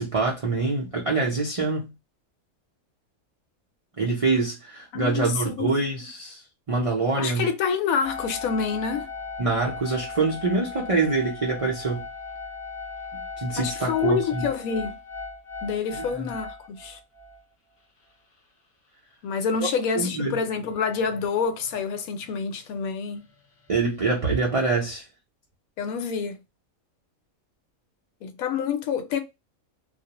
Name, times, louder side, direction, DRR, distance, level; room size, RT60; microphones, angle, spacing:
voice 1, 0.0-1.9 4.0-6.4 6.7-7.5 9.4-12.0 13.4-14.5 15.9-16.3 19.6-19.7 19.9-20.4 23.7-25.0, right 3 dB, 65° right, 0.3 m, -25 dB
voice 2, 4.9-5.7 7.1-9.1 13.6-15.0 15.6-17.0 19.2-23.3 25.8-26.4 28.2-29.2, left 6 dB, 85° left, 1.0 m, -27 dB
sound 1, 8.0-17.4 18.1-18.2 18.4-18.5 20.0-22.8 23.1-24.5, left 4 dB, 35° left, 0.5 m, -38 dB
2.4 x 2.0 x 2.8 m
omnidirectional pair, 1.4 m